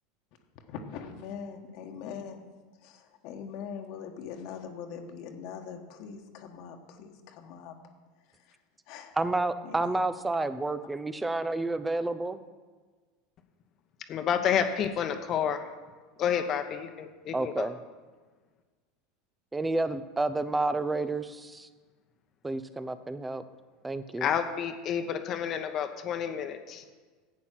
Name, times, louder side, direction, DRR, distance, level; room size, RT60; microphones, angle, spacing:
voice 1, 0.7-2.4 2.8-7.7 8.3-8.6 8.9-9.2 9.6-10.1, left 7 dB, 60° left, 3 dB, 1.4 m, -42 dB
voice 2, 9.2-12.4 17.3-17.8 19.5-21.7 22.4-23.4 23.8-24.3, right 2 dB, 15° right, 12 dB, 0.8 m, -30 dB
voice 3, 14.1-15.7 16.2-17.7 24.2-27.0, left 8 dB, 45° left, 6 dB, 1.1 m, -30 dB
11.0 x 8.6 x 6.1 m, 1.4 s
hypercardioid pair, 85°, 0 cm